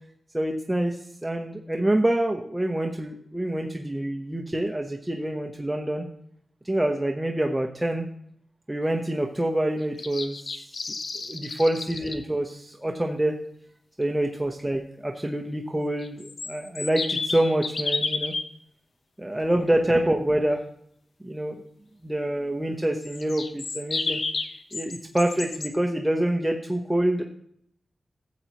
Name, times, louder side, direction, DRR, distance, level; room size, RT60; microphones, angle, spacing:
voice 1, 0.3-6.1 6.6-8.0 8.7-10.5 11.3-13.3 14.0-18.3 19.2-20.6 21.2-21.5 22.0-24.2 24.7-27.2, right 1 dB, 10° right, 2 dB, 0.9 m, -26 dB
sound 1, 9.8-12.2 16.0-18.4 23.0-25.7, left 3 dB, 65° left, 0.8 m, -31 dB
13.5 x 8.1 x 3.0 m, 0.67 s
wide cardioid pair, 105°, 0 cm